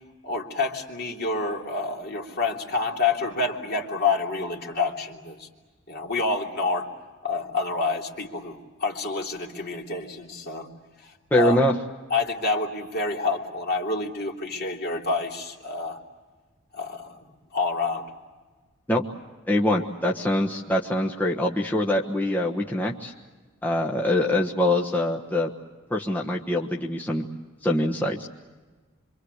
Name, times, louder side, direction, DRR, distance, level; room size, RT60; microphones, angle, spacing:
voice 1, 0.2-5.5 5.9-6.9 7.2-10.7 11.0-11.6 12.1-16.0 16.7-17.2 17.5-18.1, left 3 dB, 55° left, 0 dB, 3.3 m, -28 dB
voice 2, 11.3-11.7 18.9-19.1 19.5-23.1 23.6-25.5 25.9-27.2 27.6-28.3, left 1 dB, 10° left, -1 dB, 1.3 m, -24 dB
26.5 x 25.5 x 8.1 m, 1.3 s
head